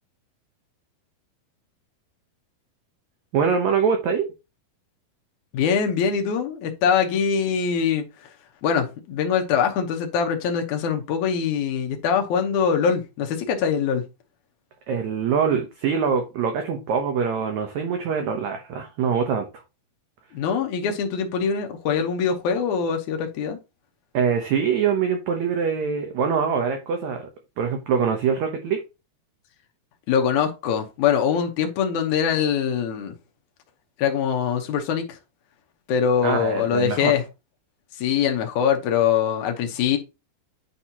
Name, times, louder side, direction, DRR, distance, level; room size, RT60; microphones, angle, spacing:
voice 1, 3.3-4.3 14.9-19.4 24.1-27.3 27.6-28.8 36.2-37.1, right 6 dB, 75° right, 1.6 m, -24 dB
voice 2, 5.5-8.0 8.6-14.0 20.3-23.6 30.1-33.1 34.0-35.2 35.9-37.2 38.0-40.0, left 7 dB, 65° left, 2.1 m, -23 dB
9.1 x 4.2 x 2.9 m
omnidirectional pair, 4.3 m